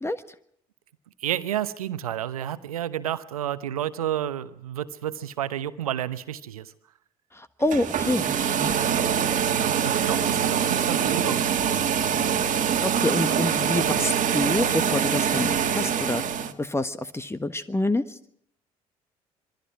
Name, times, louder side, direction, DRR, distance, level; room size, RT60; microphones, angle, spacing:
voice 1, 1.2-6.7 9.6-11.8, right 11 dB, 80° right, 13 dB, 0.9 m, -31 dB
voice 2, 7.6-8.7 12.8-16.2 16.6-18.0, left 2 dB, 15° left, 12 dB, 1.4 m, -27 dB
sound 1, 7.6-16.5, right 8 dB, 45° right, 1.8 m, -24 dB
26.0 x 21.5 x 4.8 m, 0.67 s
figure-of-eight pair, 50°, 18 cm